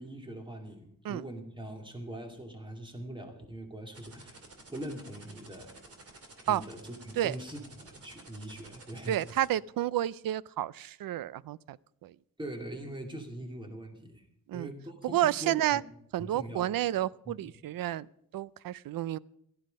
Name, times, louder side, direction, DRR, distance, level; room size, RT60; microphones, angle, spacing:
voice 1, 0.0-4.3 4.7-5.7 6.5-9.2 12.4-14.3 14.5-15.0 15.2-15.8 16.2-16.7 17.2-17.5, right 1 dB, 15° right, 3 dB, 2.6 m, -42 dB
sound 1, 3.9-9.5, right 3 dB, 45° right, 3.0 m, -52 dB
voice 2, 9.1-11.8 12.0-12.1 14.5-14.7 15.1-15.8 16.1-18.1 18.3-19.2, right 12 dB, 75° right, 21 dB, 0.5 m, -30 dB
16.5 x 12.5 x 5.3 m, 0.73 s
wide cardioid pair, 145°, 35 cm